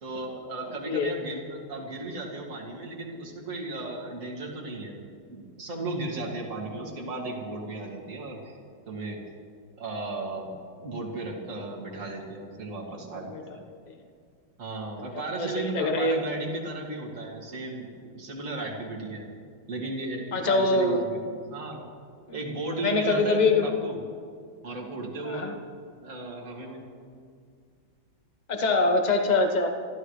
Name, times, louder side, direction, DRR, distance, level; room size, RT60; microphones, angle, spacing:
voice 1, 0.0-5.0 5.3-8.6 8.9-9.2 9.8-13.6 14.6-19.3 19.7-21.8 22.3-24.0 24.6-25.5 26.0-26.8, right 2 dB, 40° right, -3 dB, 2.6 m, -35 dB
voice 2, 0.7-1.1 13.3-13.4 13.9-14.0 15.0-16.2 20.3-21.0 22.8-23.7 25.2-25.6 28.5-29.7, left 3 dB, 25° left, 5 dB, 1.0 m, -24 dB
29.0 x 13.5 x 3.3 m, 2.1 s
omnidirectional pair, 2.2 m